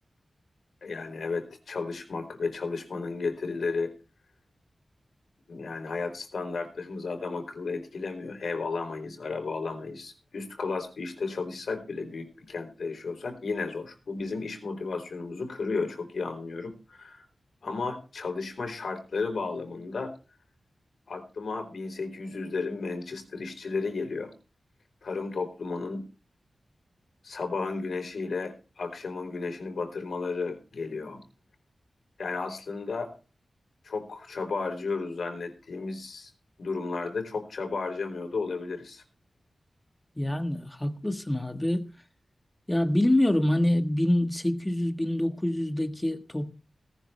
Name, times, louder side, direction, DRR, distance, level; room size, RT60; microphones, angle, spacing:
voice 1, 0.8-3.9 5.5-17.2 17.6-20.2 21.1-24.3 25.0-26.0 27.2-31.2 32.2-33.1 33.8-36.3 36.6-39.0, left 4 dB, 75° left, 4.4 m, -33 dB
voice 2, 40.2-41.8 42.7-46.5, left 1 dB, 10° left, 1.5 m, -26 dB
18.5 x 11.0 x 3.4 m
wide cardioid pair, 115°, 0 cm